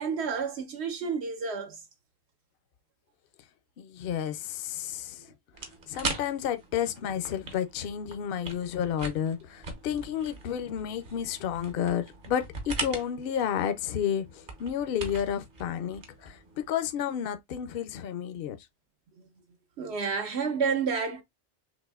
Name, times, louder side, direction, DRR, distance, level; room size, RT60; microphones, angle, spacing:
voice 1, 0.0-1.8 19.8-21.2, right 5 dB, 70° right, 1.0 m, -30 dB
voice 2, 3.8-5.3 5.9-18.6, left 9 dB, 65° left, 0.7 m, -31 dB
sound 1, 5.5-16.7, right 3 dB, 50° right, 1.0 m, -41 dB
6.1 x 2.5 x 2.3 m
omnidirectional pair, 1.1 m